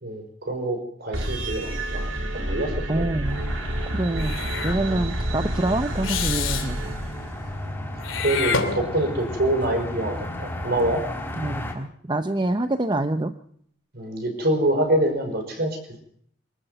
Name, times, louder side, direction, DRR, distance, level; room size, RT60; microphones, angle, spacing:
voice 1, 0.0-3.0 8.2-11.0 13.9-15.8, right 1 dB, 55° right, 6 dB, 5.3 m, -25 dB
sound 1, 1.1-7.7, right 1 dB, 85° right, 3.5 m, -29 dB
voice 2, 2.9-3.5 3.9-6.9 11.4-13.3, right 2 dB, 25° right, 8 dB, 0.8 m, -26 dB
sound 2, 3.2-11.7, left 1 dB, 10° left, 4.3 m, -35 dB
Meow / Hiss, 4.2-4.8 6.0-6.7 8.0-9.2, left 5 dB, 85° left, 2.9 m, -28 dB
24.5 x 14.0 x 8.0 m, 0.66 s
head